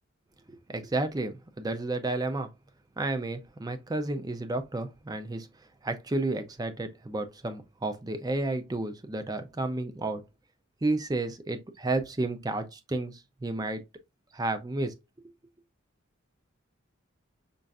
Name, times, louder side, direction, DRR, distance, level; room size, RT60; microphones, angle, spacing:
voice 1, 0.5-2.5 3.0-5.5 5.8-10.2 10.8-13.8 14.3-14.9, right 2 dB, 20° right, 0.4 m, -31 dB
5.2 x 2.4 x 2.3 m
head